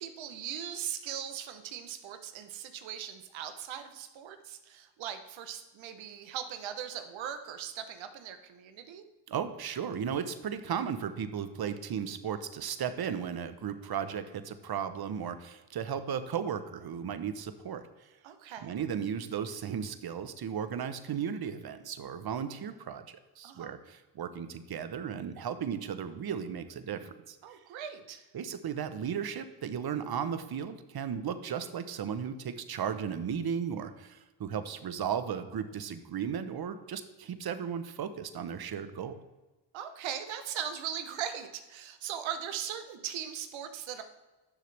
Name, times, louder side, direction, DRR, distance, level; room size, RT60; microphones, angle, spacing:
voice 1, 0.0-9.1 18.2-18.8 23.4-23.8 27.4-28.3 39.7-44.0, right 9 dB, 90° right, 9 dB, 1.0 m, -39 dB
voice 2, 9.3-17.8 18.6-27.6 28.3-39.2, right 7 dB, 55° right, 11 dB, 1.0 m, -35 dB
11.0 x 6.6 x 3.4 m, 1.2 s
cardioid pair, 70°, 45 cm